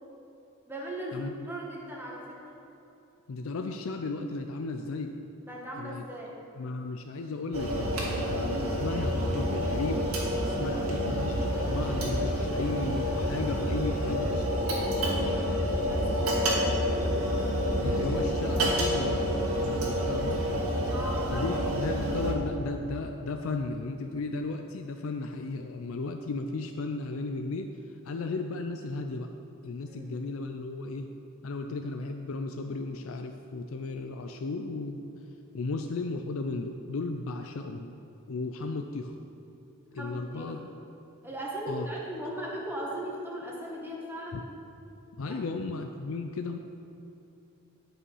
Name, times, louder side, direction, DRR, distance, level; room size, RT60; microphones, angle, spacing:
voice 1, 0.7-2.4 5.4-6.4 15.3-15.5 15.8-16.3 16.6-17.2 20.9-21.5 29.9-30.1 40.0-40.4 41.2-44.4 45.2-45.5, right 1 dB, 10° right, -4 dB, 1.5 m, -38 dB
voice 2, 3.3-5.2 5.8-6.0 6.6-14.5 17.8-19.2 19.6-20.4 21.3-27.7 28.0-29.3 29.6-31.1 31.4-35.0 35.5-38.0 38.3-39.1 39.9-40.6 41.7-41.9 44.3-44.4 45.2-46.6, left 3 dB, 70° left, 5 dB, 0.4 m, -35 dB
sound 1, 7.5-22.3, equal, 85° right, 2.1 m, -28 dB
11.0 x 5.6 x 5.5 m, 3.0 s
head